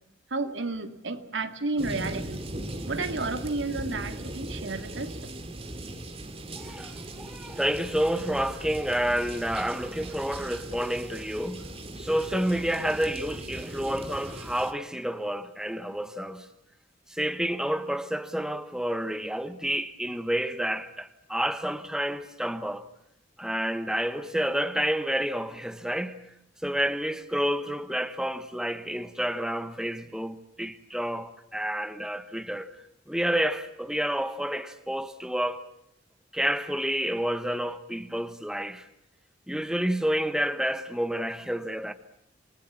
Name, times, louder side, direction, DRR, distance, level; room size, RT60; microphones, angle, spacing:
voice 1, 0.3-2.4 2.9-5.2, right 3 dB, 75° right, 2.1 m, -32 dB
sound 1, 1.8-14.7, right 1 dB, 30° right, 2.4 m, -39 dB
voice 2, 6.6-16.5 17.1-22.9 23.4-26.2 26.6-32.7 33.1-35.6 36.3-38.8 39.5-41.9, equal, 5° right, 1.1 m, -29 dB
28.0 x 20.5 x 7.3 m
head